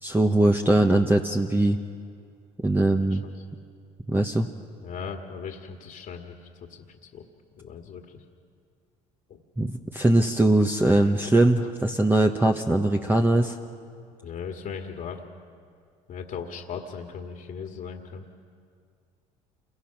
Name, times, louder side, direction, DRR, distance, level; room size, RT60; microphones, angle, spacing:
voice 1, 0.0-1.8 2.6-3.2 4.1-4.5 9.6-13.6, right 1 dB, 10° right, 3 dB, 1.2 m, -21 dB
voice 2, 4.8-6.3 7.1-7.2 7.6-8.0 9.3-9.4 14.2-15.2 16.1-18.2, left 6 dB, 55° left, 2 dB, 2.0 m, -37 dB
28.0 x 22.5 x 6.0 m, 2.3 s
supercardioid pair, 75°, 17 cm